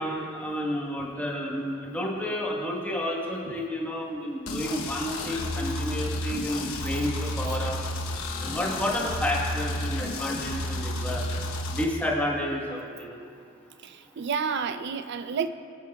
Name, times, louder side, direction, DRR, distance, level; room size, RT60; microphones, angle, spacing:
voice 1, 0.0-7.8 8.4-11.2 11.7-13.2, left 1 dB, 10° left, -2 dB, 1.3 m, -30 dB
sound 1, 4.5-11.8, left 1 dB, 85° left, 1.1 m, -31 dB
voice 2, 13.8-15.5, right 6 dB, 55° right, 11 dB, 0.4 m, -30 dB
20.5 x 8.8 x 2.3 m, 2.3 s
head